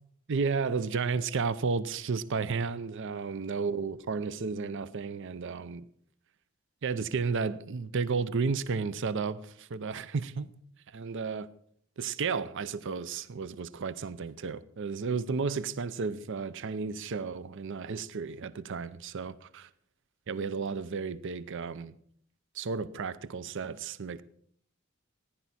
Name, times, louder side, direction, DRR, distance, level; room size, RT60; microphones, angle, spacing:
voice 1, 0.3-5.8 6.8-10.5 10.9-11.5 12.0-19.6 20.3-22.0 22.5-24.2, right 5 dB, 60° right, 0.6 m, -33 dB
15.5 x 10.5 x 4.2 m
head